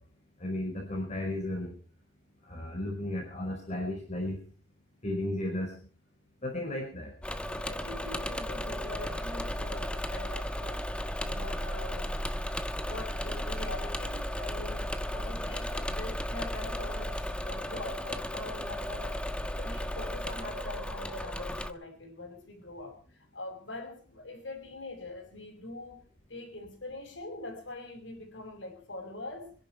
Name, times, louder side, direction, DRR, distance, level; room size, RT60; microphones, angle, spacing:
voice 1, 0.4-1.8 2.5-4.5 5.0-5.8 6.4-7.1, left 1 dB, 40° left, 0 dB, 5.1 m, -34 dB
Engine / Mechanisms, 7.2-21.7, equal, 5° left, 1.2 m, -35 dB
voice 2, 7.6-10.9 11.2-12.2 12.8-19.2 19.6-26.0 26.3-29.5, left 2 dB, 80° left, 1 dB, 5.7 m, -43 dB
26.0 x 11.5 x 4.7 m, 0.42 s
head